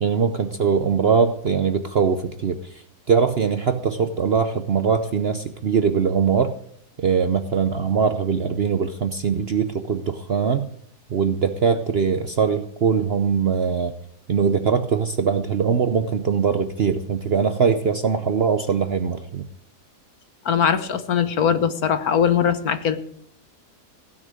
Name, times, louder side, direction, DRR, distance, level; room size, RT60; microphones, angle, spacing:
voice 1, 0.0-2.8 3.1-6.5 7.0-10.7 11.1-13.9 14.3-19.5, right 6 dB, 55° right, 9 dB, 0.7 m, -21 dB
voice 2, 20.4-23.0, left 8 dB, 65° left, 11 dB, 1.5 m, -21 dB
16.0 x 6.5 x 8.7 m, 0.65 s
omnidirectional pair, 1.7 m